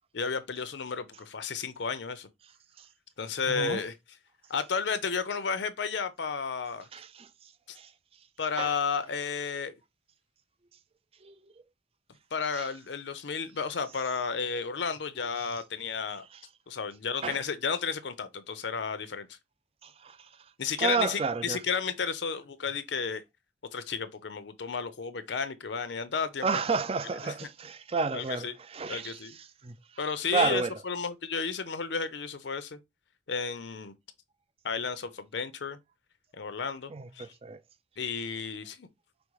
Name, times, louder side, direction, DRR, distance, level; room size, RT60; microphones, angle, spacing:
voice 1, 0.1-2.3 3.2-3.9 4.5-6.9 7.7-7.8 8.4-9.7 12.3-16.2 16.7-19.3 20.6-23.2 23.7-26.6 27.2-27.3 28.1-28.5 28.9-29.4 30.0-32.8 33.3-33.9 34.6-35.8 36.4-37.3 38.0-38.9, left 5 dB, 80° left, 0.6 m, -32 dB
voice 2, 3.5-3.8 6.9-7.3 7.8-7.9 8.6-8.7 11.2-11.3 17.2-17.4 19.8-20.2 20.8-21.6 26.4-29.2 29.6-29.7 30.3-30.7 36.9-37.6, right 4 dB, 35° right, 0.5 m, -31 dB
5.2 x 2.1 x 4.6 m
head